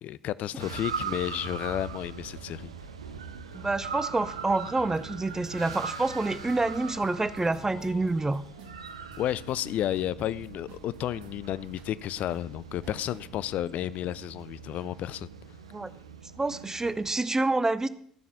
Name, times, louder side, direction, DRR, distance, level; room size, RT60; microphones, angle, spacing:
voice 1, 0.0-2.7 9.2-15.3, left 12 dB, 55° left, 0.4 m, -32 dB
sound 1, 0.6-17.1, right 6 dB, 85° right, 0.7 m, -41 dB
voice 2, 3.5-8.4 15.7-15.9 16.4-17.9, right 2 dB, 20° right, 0.6 m, -27 dB
Wind instrument woodwind instrument, 3.9-6.5 6.7-9.5, left 4 dB, 85° left, 1.1 m, -55 dB
sound 2, 4.9-5.0 5.3-11.3 11.6-13.3, right 5 dB, 65° right, 1.4 m, -54 dB
13.0 x 7.3 x 5.7 m
figure-of-eight pair, 55°, 3 cm